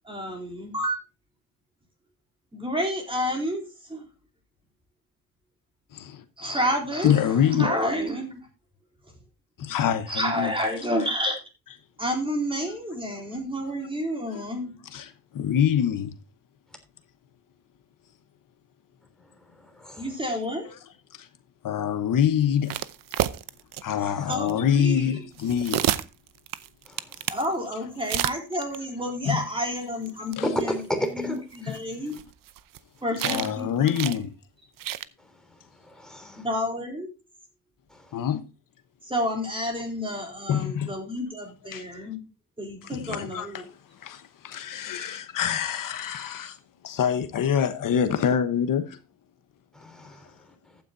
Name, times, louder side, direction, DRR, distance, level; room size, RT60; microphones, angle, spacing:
voice 1, 0.0-1.0 2.5-4.1 6.4-8.5 10.1-11.4 12.0-14.7 20.0-20.7 24.0-25.2 27.3-32.2 33.0-34.2 36.4-37.1 39.0-42.2 42.6-43.7, equal, 15° right, 3.9 m, -30 dB
voice 2, 5.9-6.5 7.0-7.7 9.6-10.5 14.3-14.4 14.9-16.1 21.1-21.3 21.6-22.7 23.8-25.9 29.3-29.4 30.4-30.5 31.7-31.8 33.2-34.3 38.1-38.4 40.5-40.9 41.7-41.8 42.9-43.6 44.0-46.6 46.8-49.0, left 8 dB, 65° left, 1.1 m, -25 dB
sound 1, 22.7-23.8 24.3-24.5 25.3-27.5 28.0-28.8 30.1-30.2 30.3-30.4 30.6-30.7 31.6-32.8 33.2-33.6 33.9-34.2 34.8-35.1, right 12 dB, 70° right, 0.8 m, -29 dB
voice 3, 30.4-31.4 35.8-36.4 37.9-38.0 49.7-50.3, equal, ahead, 3.3 m, -31 dB
14.5 x 9.5 x 2.7 m
cardioid pair, 140°, 35 cm